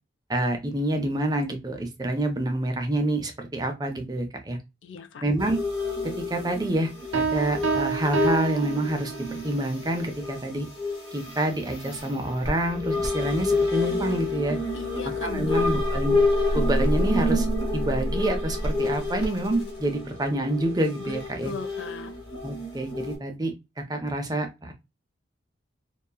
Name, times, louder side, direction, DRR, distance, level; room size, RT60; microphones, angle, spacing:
voice 1, 0.3-4.6 5.2-5.6 6.0-10.7 11.1-14.6 15.0-16.2 16.5-17.5 17.7-21.5 22.4-24.7, right 1 dB, 20° right, 0.5 m, -27 dB
voice 2, 4.8-5.2 14.7-15.8 21.0-22.1, left 5 dB, 85° left, 0.4 m, -37 dB
sound 1, 5.4-23.2, left 2 dB, 25° left, 1.1 m, -28 dB
Piano, 7.1-9.5, right 6 dB, 90° right, 0.5 m, -28 dB
2.8 x 2.3 x 2.2 m
head